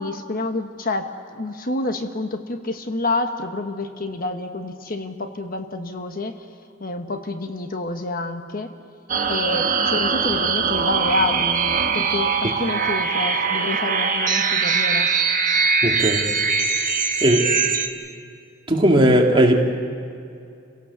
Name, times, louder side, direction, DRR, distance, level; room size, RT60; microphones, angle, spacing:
voice 1, 0.0-6.4 6.8-8.7 9.2-15.1, left 2 dB, 45° left, 6 dB, 1.1 m, -28 dB
sound 1, 9.1-17.9, right 5 dB, 40° right, 1.3 m, -22 dB
voice 2, 15.8-16.3 17.2-17.5 18.7-19.6, right 1 dB, 25° right, 0 dB, 2.2 m, -17 dB
29.5 x 17.5 x 6.9 m, 2.5 s
head